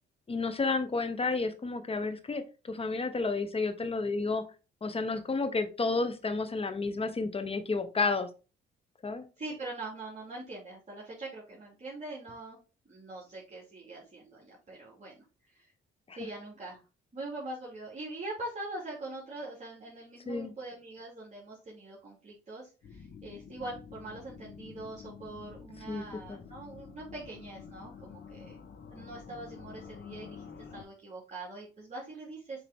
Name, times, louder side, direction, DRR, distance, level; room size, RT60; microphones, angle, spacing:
voice 1, 0.3-4.4 4.8-8.3 9.0-9.2 16.1-16.2 20.3-20.5 25.9-26.4, left 3 dB, 30° left, 9 dB, 1.2 m, -31 dB
voice 2, 9.4-12.6 12.8-15.7 16.1-16.8 17.1-28.6 28.9-32.6, right 2 dB, 35° right, -5 dB, 2.8 m, -43 dB
sound 1, 22.8-30.8, left 6 dB, 70° left, 2.7 m, -48 dB
7.1 x 3.9 x 3.6 m, 0.33 s
cardioid pair, 90°, 20 cm